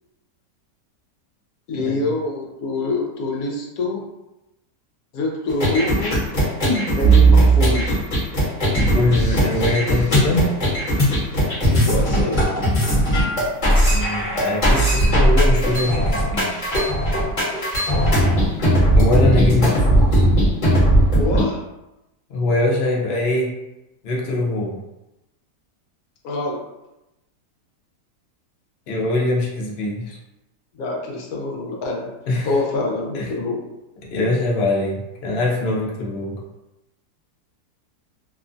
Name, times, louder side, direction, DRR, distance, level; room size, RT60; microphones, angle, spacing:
voice 1, 1.7-4.0 5.1-6.2 6.9-8.0 11.7-12.4 17.9-18.1 21.1-21.6 26.2-26.6 30.7-32.1 32.4-33.6, left 2 dB, 70° left, 0 dB, 0.9 m, -25 dB
sound 1, 5.5-21.4, right 1 dB, 30° left, 0.9 m, -17 dB
voice 2, 8.9-10.5 13.9-16.6 19.0-20.3 22.3-23.5 24.0-24.8 28.9-30.2 32.3-32.5 33.1-33.3 34.0-36.4, left 2 dB, 90° left, -3 dB, 0.5 m, -22 dB
2.9 x 2.1 x 2.5 m, 0.94 s
omnidirectional pair, 1.9 m